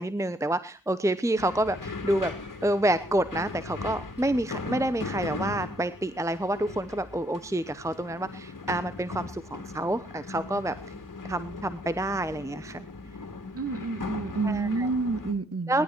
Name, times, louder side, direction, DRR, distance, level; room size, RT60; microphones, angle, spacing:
voice 1, 0.0-2.3 2.6-10.7 11.3-12.9 14.4-14.9 15.7-15.8, right 1 dB, 5° right, 14 dB, 0.9 m, -28 dB
sound 1, 1.4-15.3, left 3 dB, 45° left, 2.7 m, -39 dB
voice 2, 13.5-15.8, right 3 dB, 35° right, 14 dB, 1.6 m, -29 dB
18.0 x 12.0 x 4.5 m, 0.32 s
cardioid pair, 45°, 43 cm